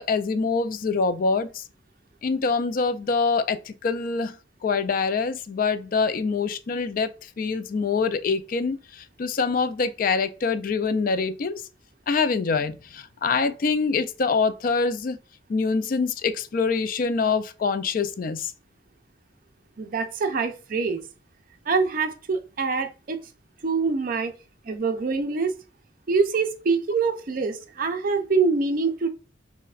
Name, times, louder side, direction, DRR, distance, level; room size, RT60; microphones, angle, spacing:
voice 1, 0.0-1.6 2.2-4.4 4.6-11.6 12.1-15.2 15.5-18.5, left 4 dB, 50° left, 0.4 m, -25 dB
voice 2, 19.8-21.0 21.7-23.2 23.6-24.3 24.6-25.5 26.1-29.1, right 4 dB, 50° right, 0.5 m, -25 dB
5.5 x 2.1 x 2.4 m
head